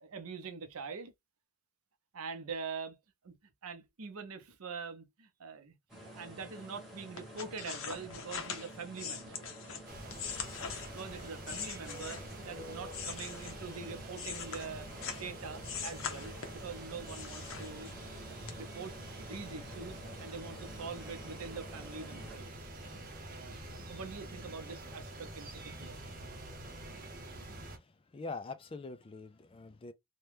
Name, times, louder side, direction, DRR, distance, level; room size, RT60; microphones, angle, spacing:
voice 1, 0.0-1.1 2.1-3.0 3.2-3.4 3.6-5.7 6.0-9.5 10.9-14.9 15.1-17.9 18.3-22.6 23.2-26.0 26.8-27.0 27.4-27.5, right 5 dB, 85° right, 0.7 m, -44 dB
sound 1, 5.9-22.4, equal, ahead, 1.3 m, -51 dB
sound 2, 7.2-12.4 12.9-15.3 15.6-16.7 17.1-18.1 18.5-18.6, left 7 dB, 65° left, 0.7 m, -42 dB
sound 3, 9.9-27.8, right 1 dB, 40° right, 0.7 m, -46 dB
voice 2, 27.6-29.9, left 3 dB, 25° left, 0.3 m, -44 dB
2.9 x 2.2 x 3.3 m
head